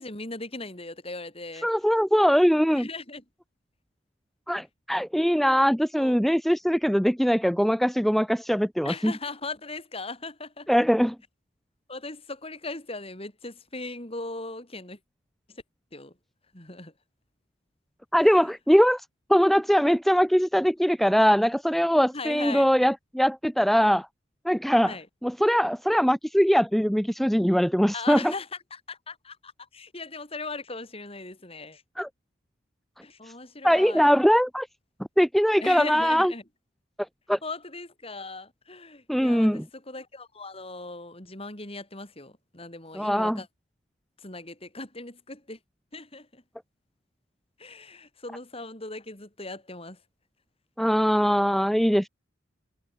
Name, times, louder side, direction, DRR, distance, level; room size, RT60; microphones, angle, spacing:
voice 1, 0.0-1.7 2.7-3.2 6.0-6.1 8.8-10.7 11.9-15.0 15.5-15.6 15.9-16.1 16.5-16.9 18.2-18.5 22.1-22.7 24.8-25.1 27.9-31.8 33.0-34.1 35.6-36.4 37.4-43.5 44.2-45.6 45.9-46.4 47.6-50.0, left 3 dB, 30° left, 5.6 m, -38 dB
voice 2, 1.6-2.9 4.5-9.1 10.7-11.1 18.1-19.0 19.3-24.1 24.4-24.9 25.2-28.3 32.0-32.1 33.6-34.7 35.2-36.3 37.3-37.4 39.1-39.6 42.9-43.4 50.8-52.1, equal, ahead, 1.3 m, -22 dB
head